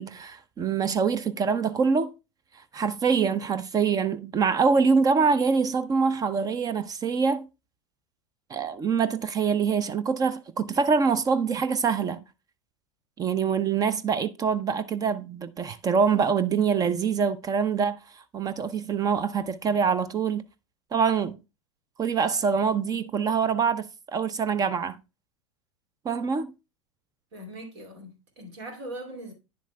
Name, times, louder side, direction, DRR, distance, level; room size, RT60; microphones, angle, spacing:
voice 1, 0.0-2.1 2.7-7.5 8.5-12.2 13.2-20.4 20.9-21.4 22.0-25.0 26.0-26.5, right 5 dB, 25° right, 0.5 m, -25 dB
voice 2, 27.3-29.3, right 1 dB, 65° right, 2.5 m, -40 dB
9.7 x 7.1 x 2.3 m
figure-of-eight pair, 85°, 15 cm